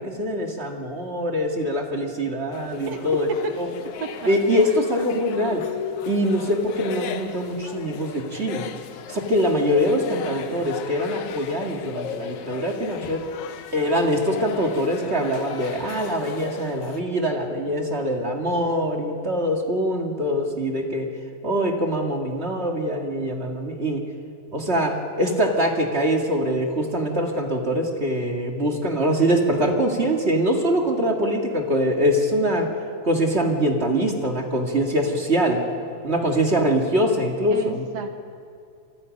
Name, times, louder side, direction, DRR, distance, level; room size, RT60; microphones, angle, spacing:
voice 1, 0.0-3.3 3.6-3.7 4.3-5.7 6.1-8.7 9.1-13.2 13.7-21.1 21.4-24.0 24.5-32.7 33.0-35.6 36.0-37.8, equal, 25° right, 1 dB, 1.8 m, -23 dB
sound 1, 2.5-17.0, left 8 dB, 70° left, 2.2 m, -36 dB
voice 2, 2.9-3.5 4.0-4.3 37.5-38.1, right 5 dB, 65° right, 6 dB, 2.0 m, -32 dB
28.0 x 23.5 x 5.3 m, 2.3 s
omnidirectional pair, 3.6 m